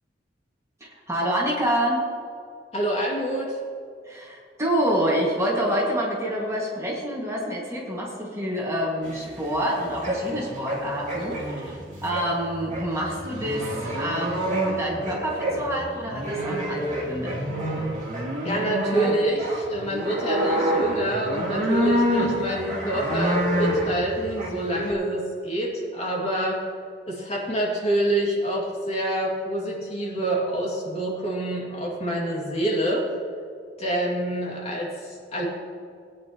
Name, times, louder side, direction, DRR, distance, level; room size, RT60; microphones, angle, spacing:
voice 1, 0.8-2.1 4.0-17.4, equal, 15° right, -4 dB, 1.9 m, -27 dB
voice 2, 2.7-3.6 18.4-26.6 27.1-33.0 33.8-35.5, right 1 dB, 35° left, -3 dB, 2.4 m, -27 dB
sound 1, 9.0-24.9, equal, 40° right, 2.7 m, -28 dB
19.0 x 9.7 x 3.0 m, 2.3 s
head